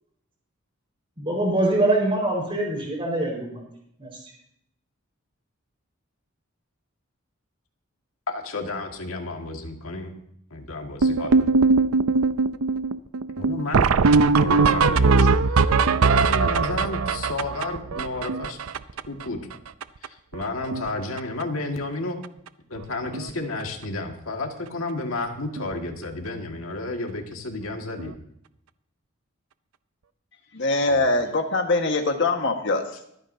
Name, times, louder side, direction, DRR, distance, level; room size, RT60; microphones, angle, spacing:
voice 1, 1.2-3.6 4.0-4.2, right 2 dB, 25° right, 4.6 m, -24 dB
voice 2, 8.3-10.1 10.5-11.5 13.4-13.9 14.4-15.3 15.6-18.6 19.1-19.4 20.0-22.2 22.7-28.1 30.9-31.1, left 2 dB, 80° left, 1.9 m, -32 dB
sound 1, 11.0-19.2 19.5-19.6 19.8-20.1 20.3-20.9 21.2-21.4 22.2-22.3 22.8-22.9 23.1-23.3 25.6-25.7 28.0-28.1, right 4 dB, 85° right, 0.5 m, -20 dB
voice 3, 30.5-32.8, left 2 dB, 55° left, 1.5 m, -22 dB
24.5 x 9.2 x 2.7 m
head